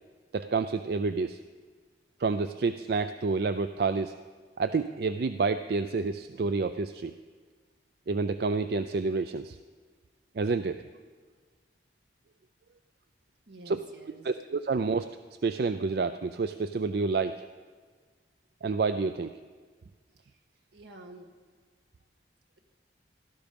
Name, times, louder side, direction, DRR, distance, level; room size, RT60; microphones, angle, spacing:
voice 1, 0.3-1.4 2.2-4.1 4.6-7.1 8.1-9.6 10.4-10.8 13.7-13.8 14.2-15.1 15.4-17.4 18.6-19.3, right 4 dB, 60° right, 11 dB, 0.4 m, -29 dB
voice 2, 13.5-14.2 20.2-20.4 20.7-21.3, right 2 dB, 80° right, 3 dB, 1.8 m, -49 dB
17.0 x 12.5 x 5.3 m, 1.5 s
head